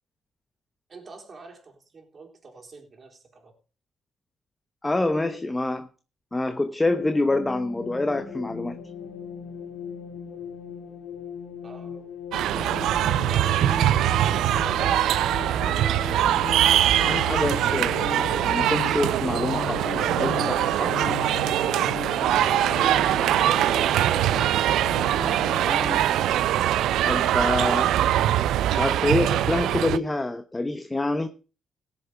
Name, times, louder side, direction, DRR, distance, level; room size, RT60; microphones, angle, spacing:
voice 1, 0.9-3.5 11.6-12.1 12.7-13.7 14.0-14.5, right 3 dB, 40° right, 3.7 m, -47 dB
voice 2, 4.8-5.9 6.3-8.8 15.6-15.8 16.3-16.5 17.0-20.9 25.7-26.5 27.0-27.9 28.7-31.3, left 2 dB, 15° left, 1.0 m, -27 dB
sound 1, 6.8-26.0, left 6 dB, 75° left, 2.1 m, -37 dB
sound 2, 12.3-30.0, right 12 dB, 80° right, 0.5 m, -22 dB
17.5 x 6.8 x 5.0 m
cardioid pair, 90°, 0 cm